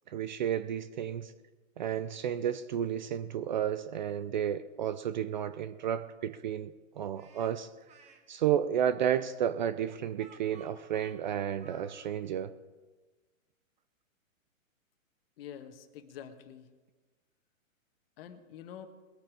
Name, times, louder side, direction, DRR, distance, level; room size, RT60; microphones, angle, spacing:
voice 1, 0.1-1.3 1.8-7.7 8.3-12.5, right 9 dB, 35° right, 13 dB, 0.4 m, -32 dB
Speech, 7.1-8.2 9.1-12.1, right 5 dB, 15° right, 1.4 m, -57 dB
voice 2, 15.4-16.7 18.2-18.9, left 9 dB, 45° left, 8 dB, 1.5 m, -47 dB
21.0 x 8.8 x 4.9 m, 1.3 s
hypercardioid pair, 140°, 41 cm